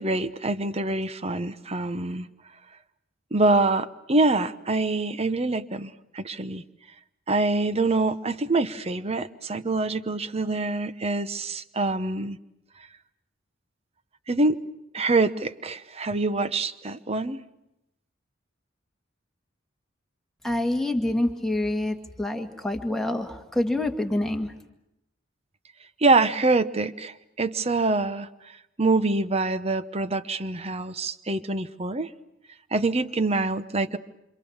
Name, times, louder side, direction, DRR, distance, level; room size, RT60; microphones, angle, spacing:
voice 1, 0.0-2.3 3.3-6.6 7.3-12.4 14.3-14.6 14.9-17.4 26.0-28.3 28.8-32.1 32.7-34.0, right 3 dB, 35° right, 12 dB, 1.0 m, -25 dB
voice 2, 20.4-24.5, left 1 dB, ahead, 2 dB, 2.0 m, -27 dB
27.0 x 26.5 x 7.3 m, 0.86 s
head